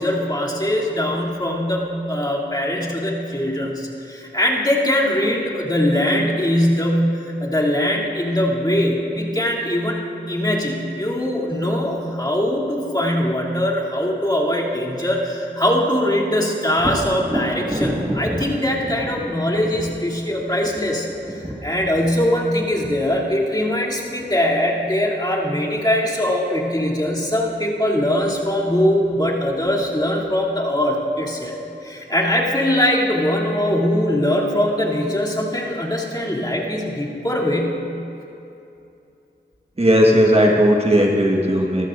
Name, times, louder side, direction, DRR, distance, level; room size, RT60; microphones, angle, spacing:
voice 1, 0.0-10.0 10.3-31.6 31.8-37.8, left 1 dB, 20° left, -5 dB, 2.9 m, -21 dB
Thunder, 16.7-24.4 28.1-28.2 28.6-29.5, equal, 15° right, 2.1 m, -30 dB
voice 2, 39.8-41.9, equal, 30° right, -1 dB, 1.5 m, -16 dB
24.5 x 14.5 x 2.6 m, 2.8 s
wide cardioid pair, 45°, 19 cm